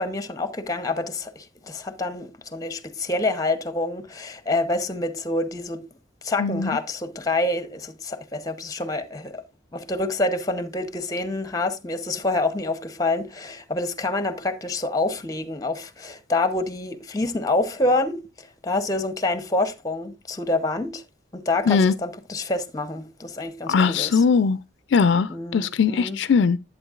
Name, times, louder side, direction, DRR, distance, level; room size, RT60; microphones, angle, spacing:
voice 1, 0.0-5.8 6.2-9.4 9.7-21.0 21.3-24.2 25.3-26.2, left 2 dB, 20° left, 0.8 m, -27 dB
voice 2, 23.7-24.6 24.9-26.6, left 5 dB, 70° left, 0.4 m, -20 dB
11.0 x 8.3 x 2.4 m
head